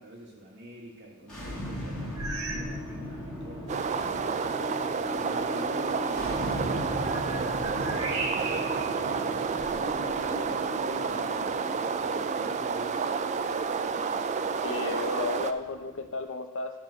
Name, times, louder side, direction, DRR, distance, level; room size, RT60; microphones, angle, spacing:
voice 1, 0.0-4.5 5.2-8.3 8.9-13.0, equal, 55° right, -1 dB, 1.6 m, -47 dB
sound 1, 1.2-16.2, equal, 5° left, 2.1 m, -38 dB
JK Einsteinium, 2.2-2.8 3.1-3.4 4.1-4.2 6.6-8.9 9.5-10.5, right 3 dB, 70° right, 0.8 m, -37 dB
sound 2, 3.7-15.5, right 5 dB, 35° right, 0.3 m, -30 dB
voice 2, 14.6-16.7, left 3 dB, 60° left, 7 dB, 0.6 m, -33 dB
9.7 x 3.7 x 6.3 m, 1.1 s
head